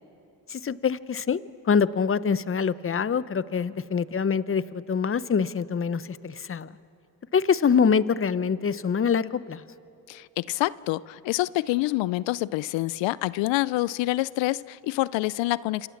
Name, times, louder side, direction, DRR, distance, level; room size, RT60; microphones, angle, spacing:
voice 1, 0.5-6.7 7.3-9.6, left 6 dB, 30° left, 16 dB, 0.8 m, -25 dB
voice 2, 10.1-15.9, left 18 dB, 90° left, 19 dB, 0.5 m, -27 dB
28.5 x 25.5 x 7.2 m, 2.7 s
supercardioid pair, 65°, 43 cm